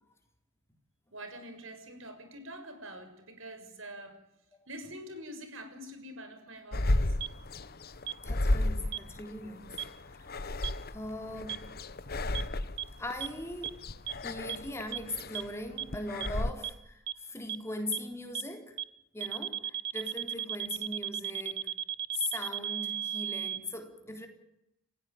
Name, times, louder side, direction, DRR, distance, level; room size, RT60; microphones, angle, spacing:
voice 1, 1.1-4.1 4.7-7.2, right 1 dB, 70° right, 6.6 m, -45 dB
sound 1, 6.7-16.5, left 1 dB, 45° left, 1.1 m, -33 dB
sound 2, 7.2-7.3 8.1-8.2 8.9-9.0 9.8-9.9 10.6-10.7 11.5-11.6 12.3-12.4 12.8-12.9 13.2-13.3 13.6-13.7 14.1-14.2 14.5-14.6 14.9-15.0 15.3-15.4 15.8-15.9 16.2-16.3 16.6-16.7 17.1-17.2 17.5-17.6 17.9-18.0 18.3-18.4 18.8-18.9 19.2-23.6, right 10 dB, 55° right, 0.9 m, -34 dB
voice 2, 8.2-11.7 13.0-13.8 14.2-18.8 19.1-21.7 22.1-24.3, left 1 dB, 15° left, 3.8 m, -40 dB
30.0 x 15.5 x 9.4 m
head